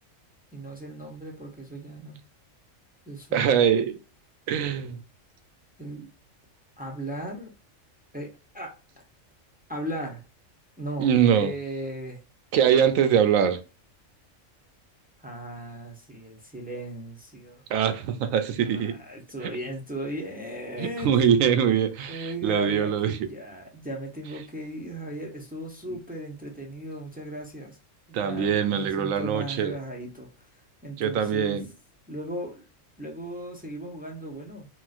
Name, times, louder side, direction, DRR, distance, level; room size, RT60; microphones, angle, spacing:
voice 1, 0.5-2.2 3.1-3.6 5.8-6.1 6.8-7.5 8.1-9.0 9.7-10.2 10.8-12.2 15.2-17.6 18.6-21.3 22.1-27.8 28.1-30.3 30.8-31.6 32.1-32.6 33.0-34.7, right 1 dB, 10° right, 0.4 m, -37 dB
voice 2, 3.3-4.0 4.5-5.0 11.0-11.5 12.5-13.6 17.7-19.0 20.8-23.3 28.1-29.7 31.0-31.7, right 8 dB, 90° right, 1.0 m, -23 dB
3.9 x 2.2 x 2.4 m
omnidirectional pair, 1.3 m